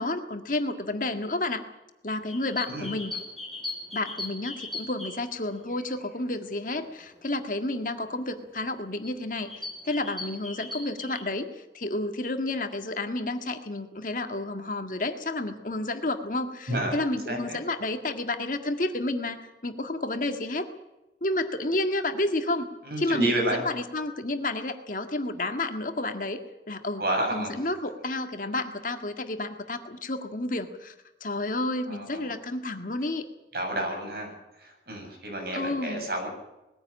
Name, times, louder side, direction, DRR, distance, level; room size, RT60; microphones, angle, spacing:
voice 1, 0.0-1.6 2.0-3.1 3.9-9.5 9.8-20.7 21.2-22.7 23.0-26.4 26.7-27.0 27.3-30.9 31.2-33.3 35.5-36.1, left 2 dB, 50° left, 6 dB, 1.8 m, -30 dB
sound 1, 2.2-6.2 6.7-6.9 7.9-8.0 8.5-8.7 9.0-11.2, left 2 dB, ahead, 4.8 m, -38 dB
voice 2, 16.7-17.0 17.3-17.6 22.8-23.6 27.0-27.6 31.9-32.3 33.5-34.3 34.6-36.3, right 1 dB, 55° right, 2 dB, 7.9 m, -30 dB
21.0 x 15.5 x 8.7 m, 0.98 s
head